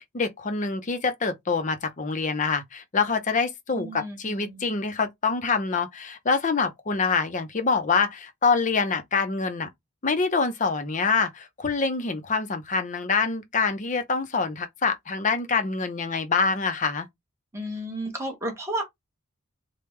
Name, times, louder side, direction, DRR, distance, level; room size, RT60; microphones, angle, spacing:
voice 1, 0.0-9.7 10.0-17.1, left 4 dB, 35° left, 0.6 m, -25 dB
voice 2, 3.7-4.7 17.5-18.8, right 1 dB, 15° right, 1.1 m, -32 dB
3.3 x 2.2 x 3.1 m
head